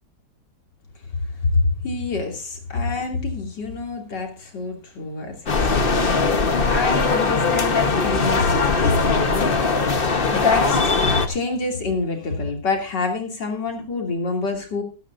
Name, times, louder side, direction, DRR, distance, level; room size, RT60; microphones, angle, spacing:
voice 1, 1.4-5.9 6.6-9.8 10.3-14.8, left 3 dB, 85° left, 3 dB, 3.5 m, -26 dB
sound 1, 5.5-11.3, left 4 dB, 35° left, 1.3 m, -20 dB
15.5 x 13.0 x 2.6 m, 0.32 s
omnidirectional pair, 1.8 m